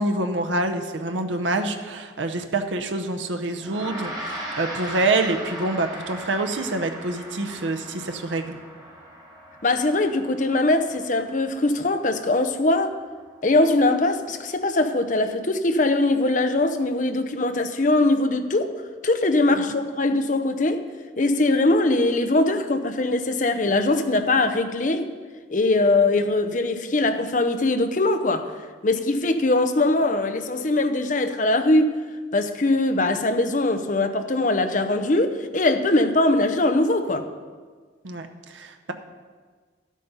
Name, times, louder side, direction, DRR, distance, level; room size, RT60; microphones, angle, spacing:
voice 1, 0.0-8.6 38.0-38.9, right 2 dB, 80° right, 7 dB, 0.8 m, -26 dB
Gong, 3.6-13.2, right 1 dB, 20° right, 2.8 m, -38 dB
voice 2, 9.6-13.0 13.4-18.8 19.0-20.8 21.2-25.1 25.5-28.5 28.8-32.0 32.3-37.3, left 2 dB, 40° left, 7 dB, 0.7 m, -21 dB
11.0 x 8.4 x 5.5 m, 1.5 s
head